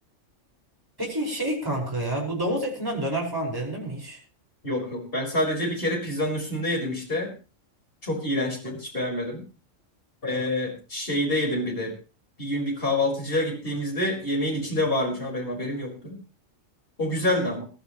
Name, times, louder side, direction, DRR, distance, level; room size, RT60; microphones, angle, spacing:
voice 1, 1.0-4.2, right 1 dB, 15° right, -2 dB, 5.1 m, -28 dB
voice 2, 4.6-7.3 8.0-9.4 10.2-11.9 12.4-16.2 17.0-17.7, left 1 dB, 45° left, 0 dB, 5.2 m, -27 dB
21.5 x 13.0 x 3.1 m, 0.33 s
omnidirectional pair, 1.3 m